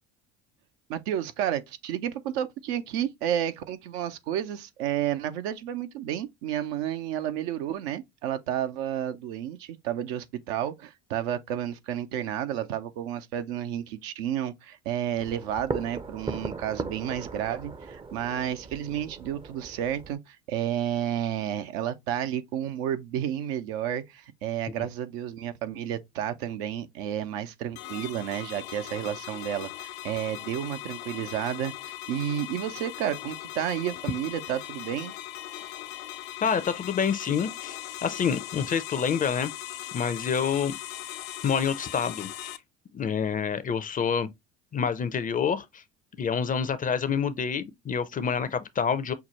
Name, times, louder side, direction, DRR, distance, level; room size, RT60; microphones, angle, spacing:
voice 1, 0.9-35.1 35.5-35.7, right 10 dB, 65° right, 0.7 m, -31 dB
sound 1, 15.2-20.1, right 4 dB, 15° right, 0.5 m, -38 dB
sound 2, 27.8-42.6, left 14 dB, 70° left, 0.6 m, -39 dB
voice 2, 36.4-39.5 39.9-40.7 41.4-42.6 42.9-44.3 44.7-45.8 46.2-49.1, left 6 dB, 25° left, 0.5 m, -27 dB
5.8 x 2.1 x 3.0 m
hypercardioid pair, 70°, 33 cm